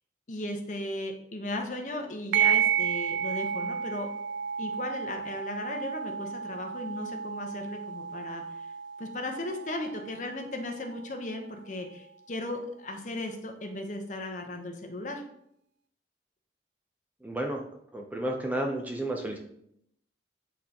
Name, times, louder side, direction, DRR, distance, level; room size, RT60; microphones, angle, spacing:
voice 1, 0.3-4.1 4.6-8.4 9.0-15.2, left 1 dB, 45° left, 3 dB, 0.9 m, -36 dB
sound 1, 2.3-11.3, right 8 dB, 80° right, 0.3 m, -32 dB
voice 2, 17.2-17.6 17.9-19.4, right 1 dB, 10° right, 1 dB, 0.5 m, -31 dB
8.4 x 4.0 x 2.9 m, 0.73 s
head